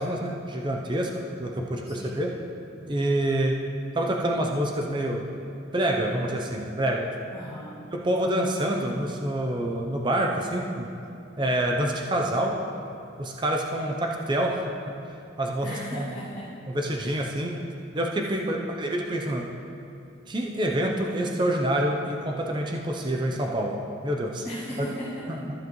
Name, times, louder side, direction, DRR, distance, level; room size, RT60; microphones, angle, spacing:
voice 1, 0.0-2.3 2.9-3.6 3.9-5.2 5.7-7.1 7.9-10.9 11.4-12.6 13.2-14.9 15.4-16.1 16.7-17.6 17.9-19.5 20.3-24.4 24.8-24.9 25.3-25.4, right 1 dB, 25° right, 0 dB, 0.5 m, -27 dB
voice 2, 1.9-2.3 7.3-7.8 15.6-16.5 17.0-17.2 18.3-18.6 24.4-25.5, equal, 15° left, -16 dB, 2.4 m, -38 dB
14.5 x 7.6 x 3.1 m, 2.6 s
head